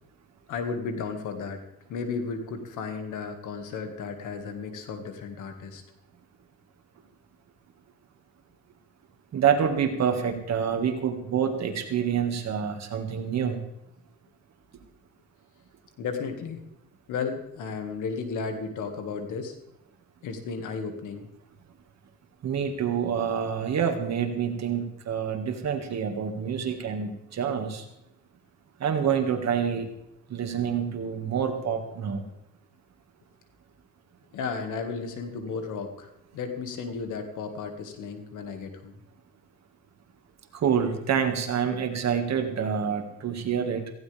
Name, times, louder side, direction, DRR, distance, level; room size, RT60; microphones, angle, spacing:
voice 1, 0.5-1.6 1.9-5.8 16.0-16.6 17.1-19.6 20.2-21.3 34.3-39.0, left 5 dB, 85° left, 6 dB, 2.1 m, -34 dB
voice 2, 9.3-13.6 22.4-27.9 28.8-29.9 30.3-32.2 40.5-43.9, right 7 dB, 60° right, 5 dB, 2.1 m, -27 dB
17.5 x 15.5 x 3.5 m, 0.85 s
cardioid pair, 90°, 30 cm